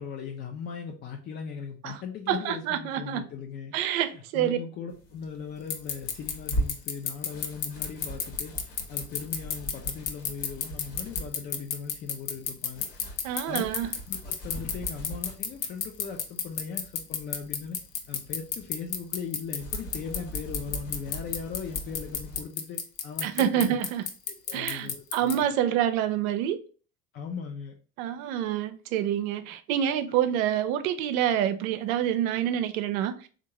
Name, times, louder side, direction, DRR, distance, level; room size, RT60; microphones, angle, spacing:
voice 1, 0.0-12.9 13.5-13.6 14.1-17.8 18.1-23.8 24.3-25.3 27.1-27.8, left 6 dB, 25° left, 0.3 m, -39 dB
voice 2, 2.3-3.2 3.7-4.6 13.2-13.9 23.2-24.0 24.5-26.6 28.0-33.3, right 10 dB, 60° right, 0.5 m, -27 dB
sound 1, 4.9-22.4, right 1 dB, 70° left, 1.3 m, -41 dB
sound 2, 5.7-25.3, left 8 dB, 50° left, 0.7 m, -30 dB
3.4 x 2.5 x 2.9 m
figure-of-eight pair, 60°, 47 cm